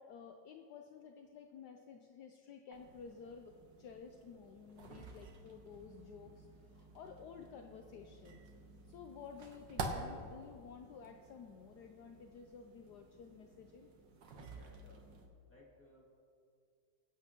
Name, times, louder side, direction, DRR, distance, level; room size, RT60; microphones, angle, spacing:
voice 1, 0.0-3.5 3.8-8.4 8.8-13.9, left 6 dB, 70° left, 4 dB, 1.2 m, -53 dB
sound 1, 2.7-15.3, right 3 dB, 75° right, 1.7 m, -50 dB
voice 2, 14.5-15.1 15.5-16.0, left 1 dB, 5° left, -4 dB, 2.2 m, -62 dB
24.0 x 8.3 x 3.0 m, 2.3 s
omnidirectional pair, 2.0 m